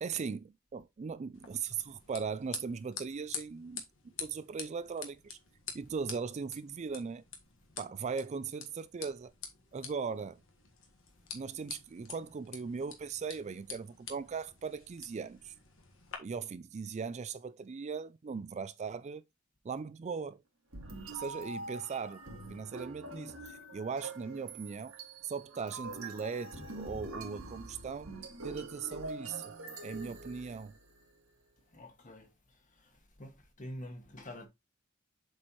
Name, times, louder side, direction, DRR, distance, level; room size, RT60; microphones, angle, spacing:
voice 1, 0.0-3.8 4.2-5.4 5.7-7.2 7.8-9.3 9.7-10.4 11.3-15.5 16.2-19.2 19.6-20.4 20.9-22.2 22.5-25.0 25.2-28.1 28.4-29.5 29.8-30.7, right 5 dB, 35° right, 0.3 m, -39 dB
sound 1, 1.3-16.2, left 7 dB, 65° left, 1.5 m, -48 dB
sound 2, 20.7-31.0, right 2 dB, 90° right, 2.0 m, -45 dB
voice 2, 31.7-32.3 32.8-32.9 33.2-34.5, left 1 dB, 40° left, 1.6 m, -46 dB
7.5 x 4.5 x 3.0 m
head